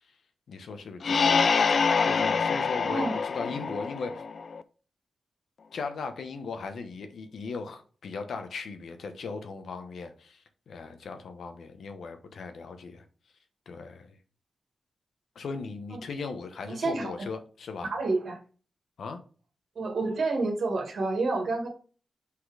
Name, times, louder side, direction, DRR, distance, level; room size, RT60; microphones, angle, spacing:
voice 1, 0.5-1.4 2.0-4.2 5.7-10.4 10.7-13.0 13.7-14.1 15.3-17.9 19.0-19.2, left 4 dB, 85° left, 1.0 m, -38 dB
sound 1, 1.0-4.6, left 5 dB, 60° left, 0.4 m, -25 dB
voice 2, 2.9-3.2 15.9-16.0 16.7-17.3 17.9-18.4 19.8-21.7, right 3 dB, 80° right, 1.7 m, -29 dB
5.7 x 4.1 x 4.9 m
wide cardioid pair, 95°, 0 cm